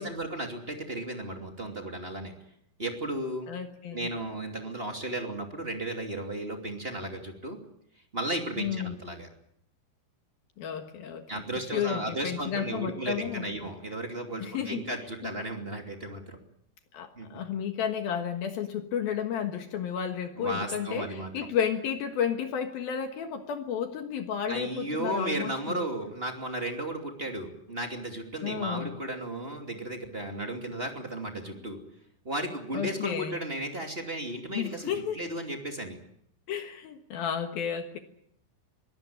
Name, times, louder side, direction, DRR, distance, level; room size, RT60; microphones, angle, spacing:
voice 1, 0.0-2.3 2.8-3.5 3.9-7.6 8.1-9.3 11.3-16.4 17.1-17.4 20.4-21.5 24.5-31.8 32.2-36.0, right 1 dB, 20° right, 3 dB, 1.5 m, -34 dB
voice 2, 3.5-4.1 8.6-9.0 10.6-11.3 11.7-13.4 14.4-14.8 15.2-15.3 16.9-25.9 28.4-28.9 31.7-31.9 32.7-33.4 34.5-35.2 36.5-38.0, left 8 dB, 65° left, 6 dB, 2.7 m, -32 dB
23.5 x 18.5 x 8.7 m, 0.71 s
omnidirectional pair, 5.7 m